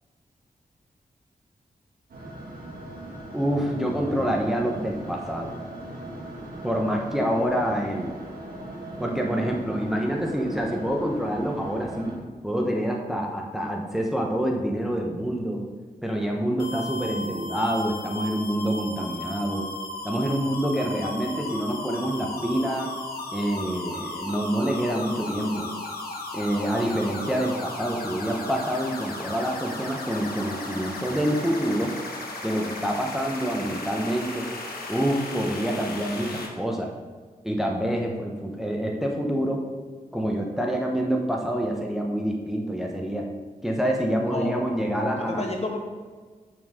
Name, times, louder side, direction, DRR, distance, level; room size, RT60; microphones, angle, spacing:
sound 1, 2.1-12.1, right 1 dB, 80° right, 1.9 m, -39 dB
voice 1, 3.3-5.5 6.6-8.2 9.0-12.2 12.4-15.6 16.0-19.7 20.0-22.9 23.3-25.7 26.3-31.9 32.4-34.5 34.9-36.9 37.4-39.6 40.1-43.3 43.6-45.5, equal, ahead, 0 dB, 1.0 m, -27 dB
sound 2, 16.6-36.5, left 2 dB, 85° left, 1.3 m, -35 dB
voice 2, 44.2-45.8, left 2 dB, 45° left, 1 dB, 1.5 m, -31 dB
8.6 x 6.1 x 3.7 m, 1.5 s
cardioid pair, 75°, 15 cm